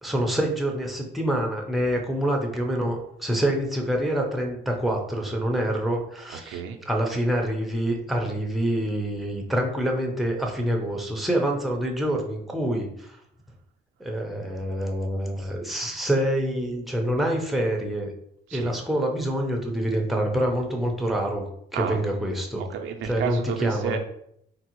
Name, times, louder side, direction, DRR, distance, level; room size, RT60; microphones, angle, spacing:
voice 1, 0.0-6.6 6.9-13.2 14.0-18.1 18.5-21.5 21.8-22.6 23.0-24.0, right 1 dB, ahead, 1 dB, 0.6 m, -26 dB
voice 2, 6.5-6.8 18.5-18.7 21.7-22.0 22.6-24.0, right 7 dB, 75° right, 4 dB, 0.5 m, -31 dB
3.7 x 2.0 x 2.9 m, 0.73 s
cardioid pair, 90°, 20 cm